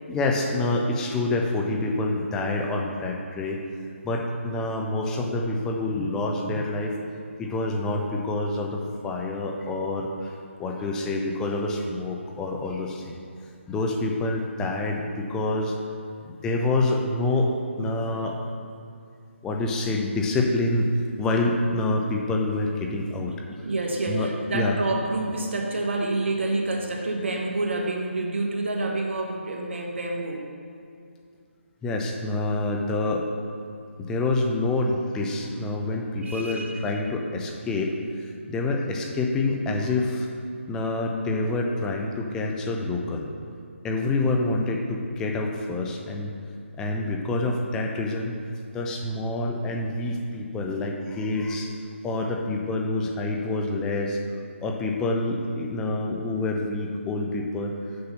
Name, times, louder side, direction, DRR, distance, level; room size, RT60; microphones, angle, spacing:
voice 1, 0.1-3.6 4.0-7.0 7.4-10.3 10.6-13.2 13.7-15.7 16.2-18.4 19.4-20.9 21.2-23.6 24.1-24.3 24.5-24.7 31.8-33.2 34.0-40.3 40.7-43.3 43.8-46.3 46.8-48.4 48.7-51.7 52.0-54.2 54.6-57.7, left 2 dB, 10° left, 1 dB, 0.5 m, -27 dB
voice 2, 23.6-30.4 36.2-37.1, right 2 dB, 65° right, 1 dB, 1.2 m, -28 dB
6.9 x 5.6 x 5.5 m, 2.4 s
figure-of-eight pair, 150°, 7 cm